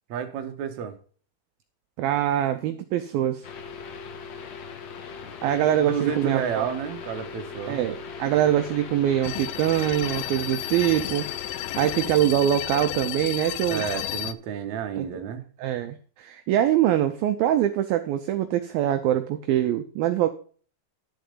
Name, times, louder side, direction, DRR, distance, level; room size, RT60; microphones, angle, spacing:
voice 1, 0.1-1.0 5.8-7.8 13.7-15.4, right 7 dB, 60° right, 2.0 m, -30 dB
voice 2, 2.0-3.5 5.4-6.7 7.7-11.3 11.8-13.9 15.0-15.2 15.6-20.3, right 11 dB, 80° right, 2.2 m, -24 dB
sound 1, 3.4-12.1, left 5 dB, 65° left, 1.8 m, -39 dB
sound 2, 9.2-14.3, left 14 dB, 80° left, 2.3 m, -32 dB
11.5 x 7.0 x 5.4 m
omnidirectional pair, 4.9 m